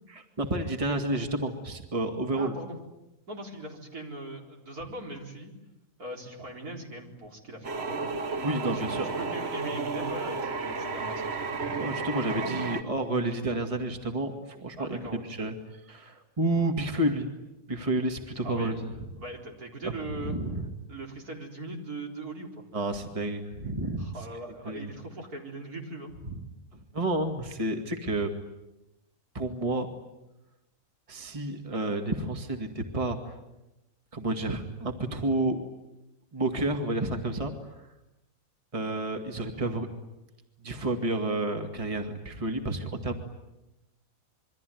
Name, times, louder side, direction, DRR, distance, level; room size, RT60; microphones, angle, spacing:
voice 1, 0.1-2.5 8.4-9.1 11.7-15.5 15.9-17.3 17.7-18.9 19.8-20.7 22.7-24.1 24.7-24.9 26.2-26.3 26.7-28.3 29.3-29.9 31.1-33.3 34.1-35.6 36.3-37.5 38.7-39.9 40.6-43.2, right 2 dB, 20° right, 5 dB, 2.2 m, -30 dB
voice 2, 2.3-2.8 3.3-5.5 6.0-8.0 8.6-11.5 12.2-12.7 14.8-15.2 18.4-18.8 19.2-20.4 20.9-22.6 24.0-26.1, right 2 dB, 70° right, 1 dB, 4.7 m, -40 dB
sound 1, 7.6-12.8, right 4 dB, 45° right, 1.5 m, -32 dB
27.0 x 23.5 x 9.4 m, 0.96 s
omnidirectional pair, 1.6 m